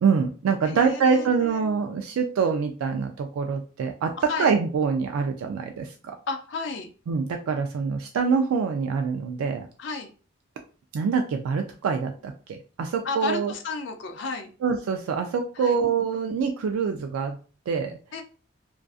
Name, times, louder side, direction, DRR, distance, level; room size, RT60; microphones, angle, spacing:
voice 1, 0.0-4.1 4.4-6.2 7.1-9.7 10.9-13.5 14.6-17.4 17.7-18.0, right 5 dB, 90° right, 4 dB, 0.3 m, -25 dB
voice 2, 0.6-1.7 4.3-4.5 6.3-6.9 9.8-10.1 13.0-14.5 15.6-15.8 18.1-18.2, left 4 dB, 60° left, 6 dB, 0.4 m, -32 dB
2.5 x 2.3 x 2.3 m, 0.37 s
head